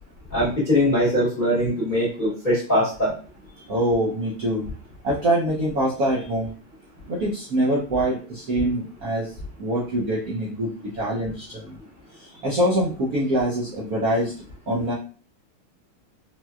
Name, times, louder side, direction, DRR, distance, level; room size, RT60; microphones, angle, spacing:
voice 1, 0.3-3.1, equal, 35° left, -8 dB, 0.8 m, -21 dB
voice 2, 3.7-4.7 5.0-6.5 7.1-9.3 9.6-11.8 12.2-14.3 14.7-14.9, right 1 dB, 65° right, -6 dB, 0.9 m, -24 dB
4.3 x 2.1 x 2.3 m, 0.38 s
omnidirectional pair, 2.4 m